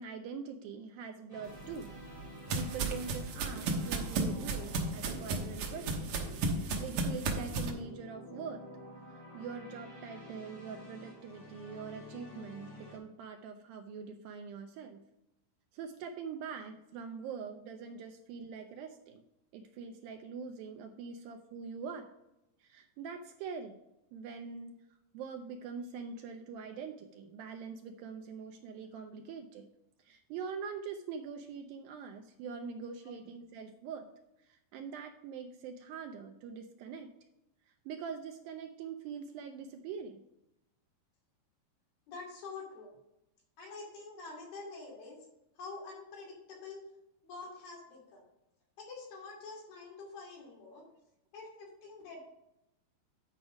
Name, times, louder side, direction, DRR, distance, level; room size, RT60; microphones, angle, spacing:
voice 1, 0.0-1.9 2.5-6.2 6.8-8.6 9.3-15.0 15.7-19.2 19.5-22.1 22.6-23.8 24.1-24.8 25.1-29.7 30.0-34.1 34.4-37.1 37.9-40.2, right 6 dB, 85° right, 6 dB, 2.0 m, -43 dB
sound 1, 1.3-13.0, left 1 dB, 20° left, 2.3 m, -50 dB
sound 2, 1.6-7.7, right 3 dB, 70° right, 1.8 m, -34 dB
voice 2, 42.1-42.9 43.6-45.2 45.6-46.8 47.2-48.2 48.8-50.8 51.3-52.2, left 3 dB, 70° left, -3 dB, 4.4 m, -46 dB
10.0 x 4.8 x 5.1 m, 0.88 s
omnidirectional pair, 4.7 m